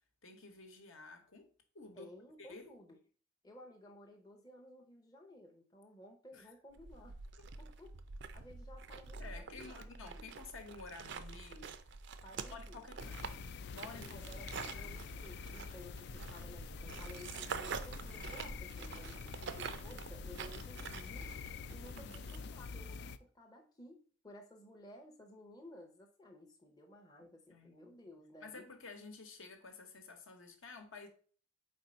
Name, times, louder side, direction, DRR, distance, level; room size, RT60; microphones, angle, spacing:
voice 1, 0.2-1.5 1.7-2.1 2.4-2.7 6.3-6.5 7.4-7.5 9.2-11.8 12.5-13.4 13.6-14.9 21.9-22.5 27.5-27.9 28.4-31.1, left 4 dB, 65° left, 1.1 m, -52 dB
voice 2, 2.0-3.0 3.4-7.2 7.6-8.0 8.3-9.9 10.2-10.3 12.2-13.1 13.9-21.3 21.7-28.7, left 1 dB, 15° left, 0.6 m, -56 dB
sound 1, 6.8-22.4, right 5 dB, 55° right, 0.4 m, -47 dB
sound 2, 13.0-23.2, left 5 dB, 50° left, 0.3 m, -47 dB
4.4 x 4.3 x 5.0 m
head